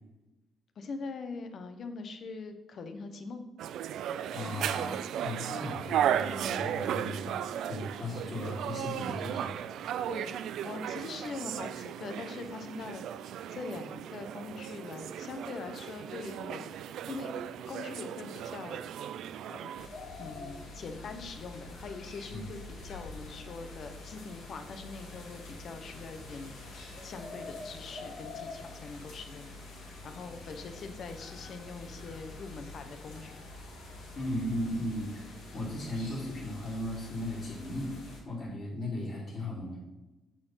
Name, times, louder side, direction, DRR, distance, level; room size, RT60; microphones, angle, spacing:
voice 1, 0.8-3.4 10.1-10.4 10.6-13.0 13.5-16.7 17.1-17.3 17.7-18.8 19.5-19.7 20.2-26.6 27.0-33.4, left 4 dB, 60° left, 7 dB, 1.0 m, -42 dB
sound 1, 3.6-19.9, right 10 dB, 80° right, 0.3 m, -35 dB
voice 2, 4.3-7.4 7.7-9.5 22.3-22.4 34.1-35.1 35.5-37.9 38.2-39.8, left 1 dB, 40° left, -9 dB, 2.7 m, -36 dB
sound 2, 19.8-38.2, left 2 dB, 85° left, 2.5 m, -46 dB
7.3 x 4.6 x 5.7 m, 1.1 s
cardioid pair, 90°, 0 cm